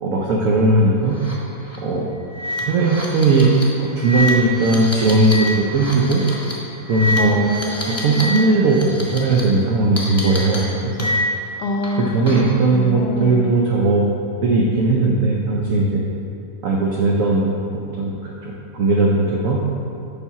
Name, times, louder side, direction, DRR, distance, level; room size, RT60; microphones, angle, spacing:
voice 1, 0.0-1.1 1.8-2.2 2.6-3.5 3.8-6.2 6.9-7.4 8.0-11.1 12.1-14.0 14.4-16.0 16.6-18.1 18.4-19.6, right 2 dB, 65° right, -3 dB, 1.0 m, -18 dB
sound 1, 1.1-1.3 1.6-1.8 2.3-8.4 8.6-9.4 10.0-11.5 11.8-12.6, left 1 dB, 15° left, 0.5 m, -27 dB
voice 2, 7.1-8.5 11.6-12.4 12.7-13.5, left 1 dB, 85° left, 3 dB, 1.3 m, -25 dB
5.5 x 4.3 x 5.8 m, 2.6 s
omnidirectional pair, 1.7 m